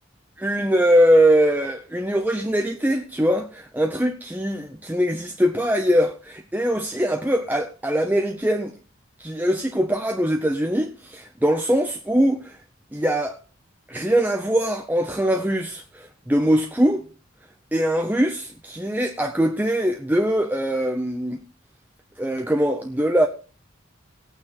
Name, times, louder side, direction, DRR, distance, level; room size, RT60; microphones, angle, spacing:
voice 1, 0.4-8.7 9.2-12.6 12.9-13.4 13.9-17.0 17.7-21.4 22.2-23.3, equal, 10° right, 0.7 m, -22 dB
19.0 x 8.7 x 3.0 m
head